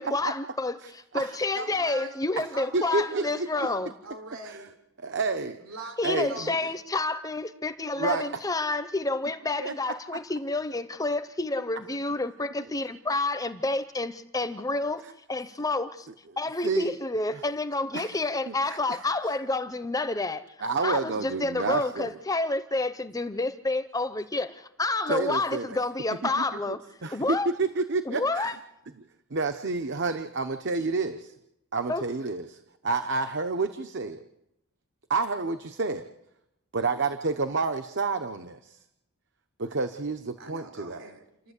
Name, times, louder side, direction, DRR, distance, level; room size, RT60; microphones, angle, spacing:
voice 1, 0.0-3.9 6.0-15.0 15.3-16.1 16.4-20.4 20.8-26.8 27.1-27.5 28.0-28.6 31.9-32.0, left 2 dB, 15° left, 0.7 m, -29 dB
voice 2, 0.8-1.4 2.7-3.5 4.4-4.6 5.0-5.6 6.0-6.6 8.0-8.3 9.6-9.7 16.6-16.9 17.9-18.2 18.5-19.0 20.6-22.1 25.1-25.8 26.4-26.5 27.0-28.5 29.3-31.3 31.7-34.2 35.1-36.1 36.7-38.8 39.6-41.0, right 3 dB, 55° right, 0.9 m, -29 dB
voice 3, 1.5-2.2 2.5-4.8 5.6-6.8 40.4-41.5, right 2 dB, 70° right, 3.8 m, -42 dB
29.5 x 12.0 x 8.2 m
head